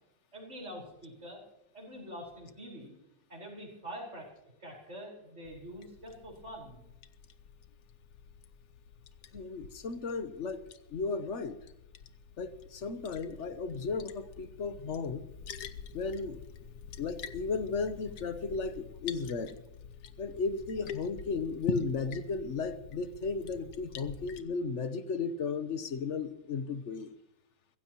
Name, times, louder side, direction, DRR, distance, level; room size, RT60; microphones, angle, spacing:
voice 1, 0.3-1.4 1.7-2.9 3.3-4.3 4.6-6.8, equal, 40° right, -1 dB, 5.2 m, -45 dB
Liquid, 5.5-24.4, left 7 dB, 65° left, 1.4 m, -46 dB
voice 2, 9.3-11.6 12.4-15.2 15.9-16.4 17.0-19.6 20.2-27.1, left 4 dB, 50° left, 11 dB, 1.1 m, -35 dB
24.0 x 15.5 x 3.0 m, 0.84 s
omnidirectional pair, 1.9 m